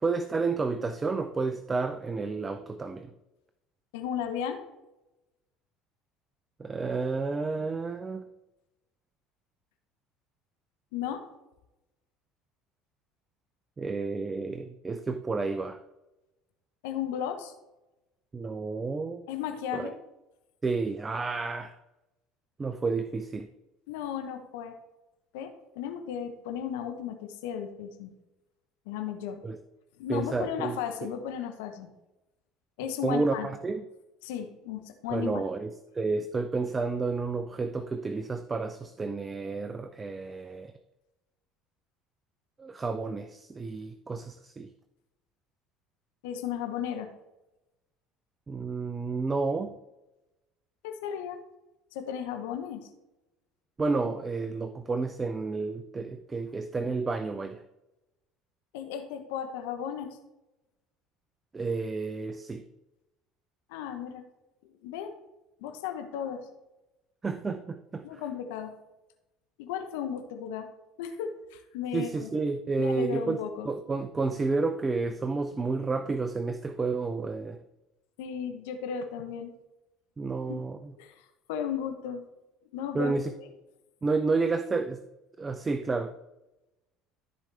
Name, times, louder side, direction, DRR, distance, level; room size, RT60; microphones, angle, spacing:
voice 1, 0.0-3.1 6.6-8.3 13.8-15.8 18.3-19.2 19.7-19.9 20.6-21.7 22.6-23.5 29.4-29.6 30.1-31.1 33.0-33.9 35.1-40.7 42.6-44.7 48.5-49.7 53.8-57.6 61.5-62.6 67.2-68.2 71.9-77.6 80.2-80.9 82.9-83.3 84.0-85.0 85.4-86.1, right 3 dB, 25° right, 11 dB, 0.5 m, -31 dB
voice 2, 3.9-4.6 10.9-11.2 16.8-17.5 19.3-19.9 23.9-24.8 25.3-28.1 28.9-29.4 30.0-31.9 32.8-33.5 34.2-35.4 46.2-47.1 50.8-51.4 51.9-52.9 58.7-60.2 63.7-64.2 64.6-65.1 65.6-66.5 68.0-68.8 69.6-70.7 71.0-72.3 72.8-73.7 78.2-79.5 80.5-80.6 81.0-82.2 82.7-83.1, left 8 dB, 75° left, 6 dB, 1.0 m, -35 dB
13.5 x 4.8 x 3.4 m, 0.97 s
hypercardioid pair, 70°, 0 cm